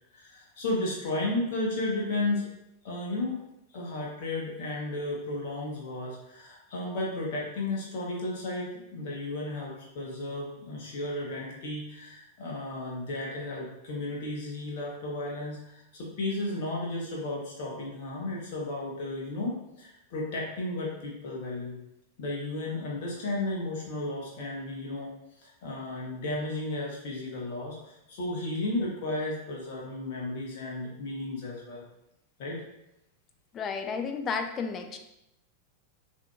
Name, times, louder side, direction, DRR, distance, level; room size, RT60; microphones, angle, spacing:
voice 1, 0.1-2.5 2.8-3.4 3.7-21.8 22.2-25.1 25.4-31.8 32.4-32.6, left 2 dB, 50° left, -3 dB, 0.9 m, -34 dB
voice 2, 33.5-35.0, left 5 dB, 25° left, 6 dB, 0.5 m, -32 dB
6.0 x 2.7 x 2.3 m, 0.85 s
figure-of-eight pair, 90°, 0 cm